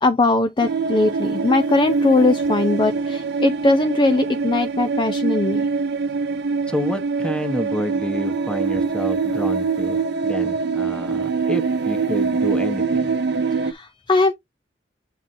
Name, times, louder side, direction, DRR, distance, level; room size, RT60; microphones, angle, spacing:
voice 1, 0.0-5.7 13.6-14.3, left 2 dB, 25° left, 0.5 m, -20 dB
sound 1, 0.6-13.7, right 4 dB, 60° right, 0.5 m, -24 dB
voice 2, 6.7-13.2, equal, 5° left, 1.0 m, -29 dB
9.2 x 4.4 x 2.6 m
head